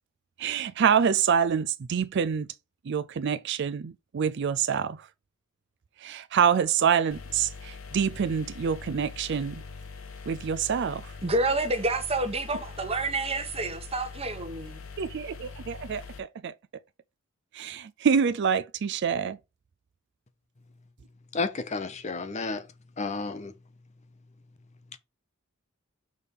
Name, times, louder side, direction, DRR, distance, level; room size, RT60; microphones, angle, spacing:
voice 1, 0.4-2.5 2.9-5.1 6.0-9.6 10.3-11.1 15.0-16.5 17.5-19.4, right 7 dB, 55° right, 0.4 m, -26 dB
sound 1, 7.1-16.2, left 4 dB, 80° left, 1.1 m, -43 dB
voice 2, 11.2-14.8, right 2 dB, 30° right, 1.2 m, -28 dB
voice 3, 21.3-22.7 23.0-23.5 24.9-25.0, left 3 dB, 35° left, 0.7 m, -31 dB
6.4 x 3.4 x 5.2 m
head